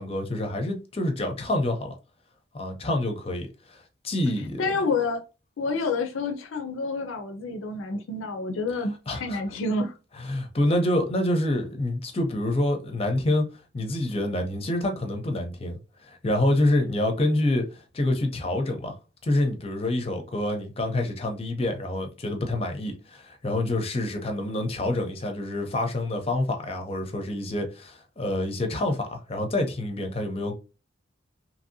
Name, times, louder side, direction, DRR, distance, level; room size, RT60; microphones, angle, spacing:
voice 1, 0.0-2.0 2.5-4.6 9.1-9.4 10.2-13.5 13.7-19.0 19.2-30.5, left 1 dB, 30° left, 0.5 m, -27 dB
voice 2, 4.6-5.2 5.6-9.9, left 3 dB, 85° left, 0.5 m, -28 dB
2.9 x 2.7 x 2.6 m
head